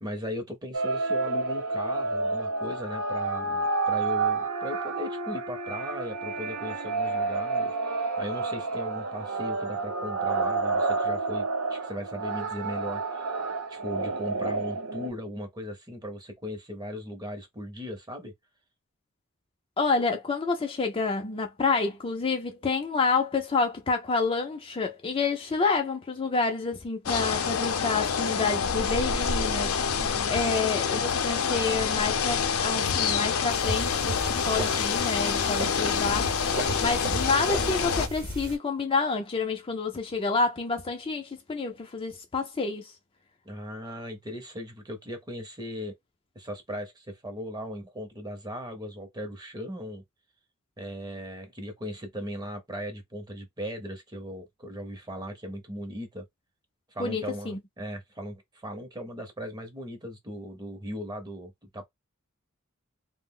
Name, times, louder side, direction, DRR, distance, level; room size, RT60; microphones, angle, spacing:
voice 1, 0.0-13.3 13.7-18.3 30.0-30.4 43.4-45.9 46.3-50.0 50.8-56.2 56.9-61.9, equal, 20° right, 0.7 m, -38 dB
sound 1, 0.7-15.1, right 3 dB, 80° right, 0.7 m, -30 dB
voice 2, 19.8-29.8 30.3-42.9 57.0-57.6, left 4 dB, 25° left, 0.4 m, -28 dB
sound 2, 27.1-38.1, left 6 dB, 85° left, 0.5 m, -27 dB
sound 3, 33.5-38.5, right 2 dB, 45° right, 0.9 m, -35 dB
2.4 x 2.1 x 3.6 m
head